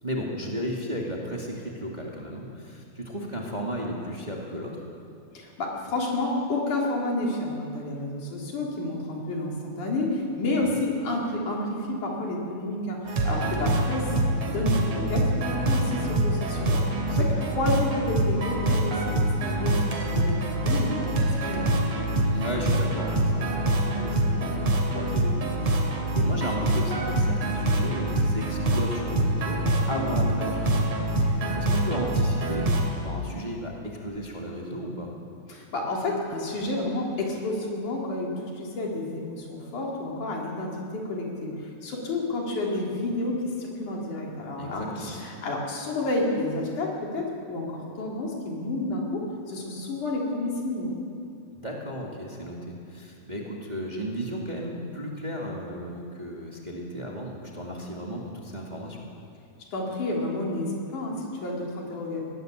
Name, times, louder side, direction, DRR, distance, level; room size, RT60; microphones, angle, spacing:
voice 1, 0.0-4.8 10.7-10.8 17.1-17.4 22.3-30.9 31.2-32.7 33.0-35.1 44.6-45.1 51.5-59.0, equal, 15° right, -2 dB, 2.3 m, -34 dB
voice 2, 5.3-14.2 14.4-16.8 17.2-17.3 17.6-21.7 35.5-51.0 59.7-62.2, left 2 dB, 80° left, -2 dB, 5.0 m, -30 dB
sound 1, 13.1-32.9, right 1 dB, 60° right, 3.7 m, -25 dB
20.0 x 18.5 x 8.0 m, 2.5 s
omnidirectional pair, 3.5 m